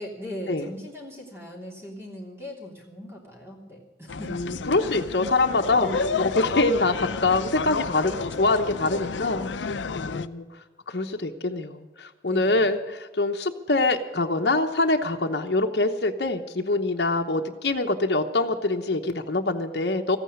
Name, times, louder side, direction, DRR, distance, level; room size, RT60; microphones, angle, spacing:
voice 1, 0.0-4.3 5.7-6.6 8.0-9.5 12.3-12.7, equal, 15° right, -2 dB, 3.1 m, -40 dB
sound 1, 4.1-10.3, left 5 dB, 90° left, 0.6 m, -31 dB
voice 2, 4.3-5.9 6.2-10.5 10.9-20.2, left 2 dB, 65° left, 3 dB, 1.0 m, -25 dB
14.5 x 9.1 x 9.6 m, 1.2 s
head